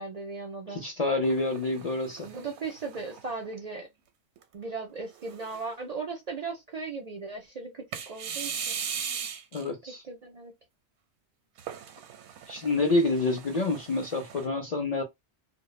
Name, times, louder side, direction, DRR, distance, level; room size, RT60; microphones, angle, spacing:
voice 1, 0.0-0.8 2.2-3.9 4.5-8.8 10.0-10.5, right 4 dB, 50° right, 0.5 m, -37 dB
voice 2, 0.7-2.3 9.5-10.0 12.5-15.0, left 2 dB, 50° left, 0.5 m, -28 dB
sound 1, 1.2-3.8 4.4-4.5 5.1-5.8 7.9-9.7 11.6-14.5, right 7 dB, 80° right, 0.9 m, -39 dB
2.1 x 2.0 x 3.1 m
omnidirectional pair, 1.1 m